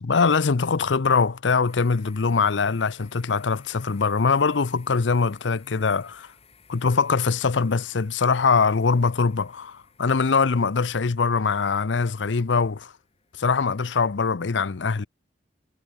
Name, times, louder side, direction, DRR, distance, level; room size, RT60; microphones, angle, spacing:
voice 1, 0.0-6.3 6.7-12.9 13.4-15.1, left 5 dB, 75° left, 0.7 m, -22 dB
sound 1, 1.7-13.6, left 6 dB, 35° left, 2.8 m, -57 dB
head